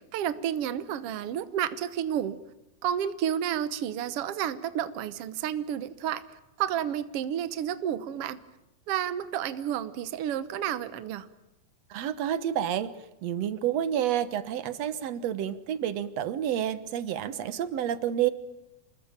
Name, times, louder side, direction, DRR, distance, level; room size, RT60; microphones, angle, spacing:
voice 1, 0.0-2.4 2.8-6.2 6.6-8.4 8.9-11.3, right 10 dB, 90° right, 13 dB, 1.2 m, -31 dB
voice 2, 11.9-12.9 13.2-18.3, right 10 dB, 60° right, 14 dB, 1.8 m, -29 dB
28.0 x 20.5 x 9.0 m, 0.92 s
omnidirectional pair, 4.2 m